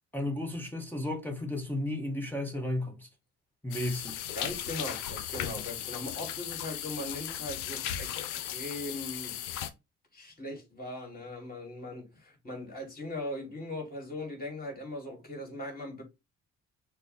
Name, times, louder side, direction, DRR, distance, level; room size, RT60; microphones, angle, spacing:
voice 1, 0.1-3.1 3.6-4.3, left 1 dB, 5° left, 1.2 m, -33 dB
sound 1, 3.7-9.7, left 11 dB, 75° left, 0.6 m, -37 dB
voice 2, 4.3-9.4 10.1-16.0, left 1 dB, 25° left, 3.0 m, -39 dB
6.5 x 2.3 x 3.6 m
hypercardioid pair, 50°, 36 cm